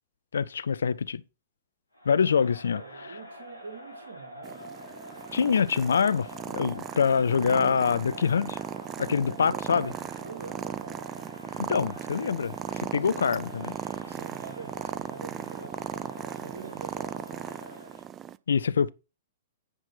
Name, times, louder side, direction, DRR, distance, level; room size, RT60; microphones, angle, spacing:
voice 1, 0.3-1.2 2.1-2.8 5.3-8.6 9.0-9.9 11.6-13.7 18.5-18.9, left 6 dB, 65° left, 0.5 m, -25 dB
Crowd, 1.9-18.1, equal, 85° left, 2.5 m, -46 dB
voice 2, 2.7-4.7 9.0-11.2 12.9-13.3 13.9-16.1 16.4-17.2, right 5 dB, 65° right, 2.2 m, -45 dB
Purr, 4.4-18.4, right 9 dB, 20° right, 0.4 m, -38 dB
9.8 x 4.3 x 6.1 m
figure-of-eight pair, 105°, 0 cm